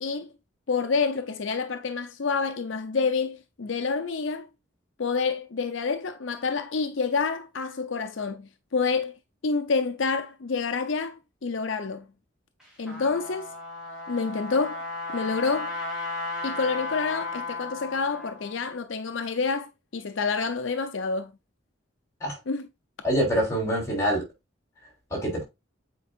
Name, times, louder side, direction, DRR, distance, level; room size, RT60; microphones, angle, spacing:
voice 1, 0.7-4.5 5.0-9.1 9.4-12.1 12.8-13.5 14.1-14.8 15.1-15.7 16.4-21.3 22.5-22.6, left 4 dB, 75° left, 0.6 m, -28 dB
Trumpet, 12.6-18.6, left 3 dB, 5° right, 2.9 m, -35 dB
voice 2, 23.0-24.2 24.8-25.4, equal, 15° left, 3.3 m, -26 dB
8.3 x 4.7 x 2.4 m
head